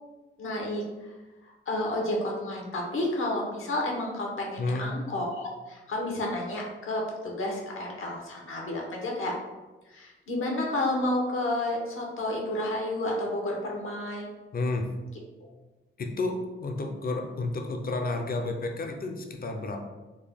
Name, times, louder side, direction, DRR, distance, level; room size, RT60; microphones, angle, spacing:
voice 1, 0.4-0.8 1.7-9.3 9.9-14.3, left 1 dB, 75° left, -1 dB, 0.9 m, -31 dB
voice 2, 14.5-14.9 16.0-19.8, left 2 dB, 45° left, 4 dB, 0.5 m, -31 dB
3.7 x 2.2 x 3.5 m, 1.2 s
cardioid pair, 80°, 21 cm